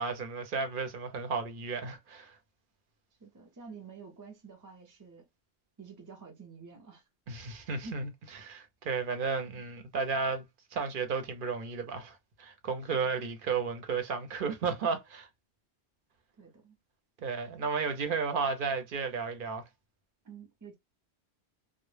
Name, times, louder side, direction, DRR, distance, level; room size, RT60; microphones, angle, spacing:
voice 1, 0.0-2.4 7.3-8.1 8.4-10.4 10.7-15.3 17.2-19.6, right 5 dB, 55° right, 0.7 m, -33 dB
voice 2, 3.2-5.2 5.8-7.0 7.8-8.0 13.0-13.2 16.4-16.8 20.2-20.8, right 4 dB, 30° right, 0.3 m, -49 dB
2.0 x 2.0 x 3.1 m
omnidirectional pair, 1.1 m